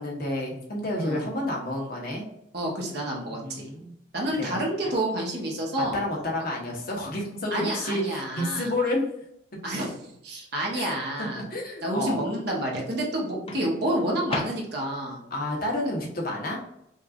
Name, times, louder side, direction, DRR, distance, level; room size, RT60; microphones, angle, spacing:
voice 1, 0.0-2.3 3.3-3.9 4.4-4.5 5.8-9.1 10.7-10.9 11.2-12.2 15.3-16.6, left 1 dB, 50° left, -1 dB, 1.0 m, -30 dB
voice 2, 2.5-3.7 4.1-5.9 7.5-8.7 9.6-11.4 11.8-15.2, right 1 dB, 60° right, -2 dB, 1.1 m, -29 dB
Microwave oven, 4.8-5.5 7.4-7.7 13.5-15.1, left 3 dB, 30° left, 0.4 m, -38 dB
5.3 x 2.5 x 2.4 m, 0.77 s
head